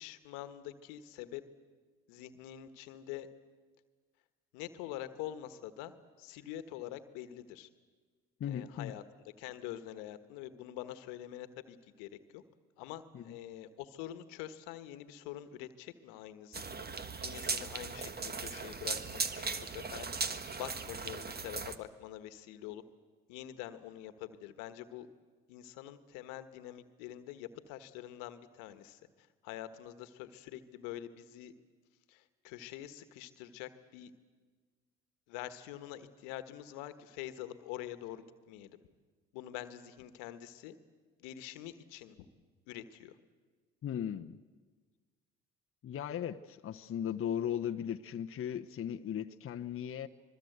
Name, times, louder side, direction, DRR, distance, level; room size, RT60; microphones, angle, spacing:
voice 1, 0.0-1.4 2.1-3.3 4.5-7.7 8.4-9.0 9.4-12.4 12.8-16.8 17.2-20.1 20.6-22.8 23.3-25.1 25.5-31.5 32.1-34.1 35.3-38.8 39.3-40.8 41.2-42.3 42.7-43.2, left 12 dB, 80° left, 1.4 m, -45 dB
voice 2, 8.4-8.9 13.1-13.2 43.8-44.4 45.8-50.1, left 9 dB, 40° left, 0.9 m, -37 dB
sound 1, 16.5-21.8, right 4 dB, 30° right, 1.5 m, -38 dB
25.5 x 22.0 x 8.0 m
hypercardioid pair, 65°, 32 cm